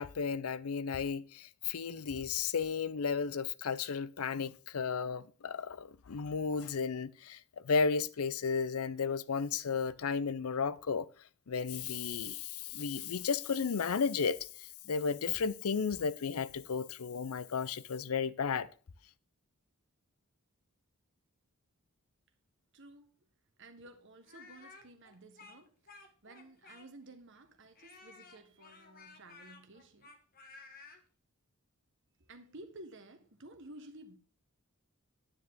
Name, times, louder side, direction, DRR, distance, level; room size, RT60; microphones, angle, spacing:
voice 1, 0.0-7.4 7.6-11.1 11.5-18.7, left 5 dB, 80° left, 0.5 m, -34 dB
voice 2, 22.7-23.2 23.6-30.1 32.2-34.2, right 2 dB, 55° right, 1.4 m, -54 dB
Speech, 24.2-27.1 27.8-31.0, left 4 dB, 40° left, 1.5 m, -55 dB
9.8 x 9.5 x 3.8 m
head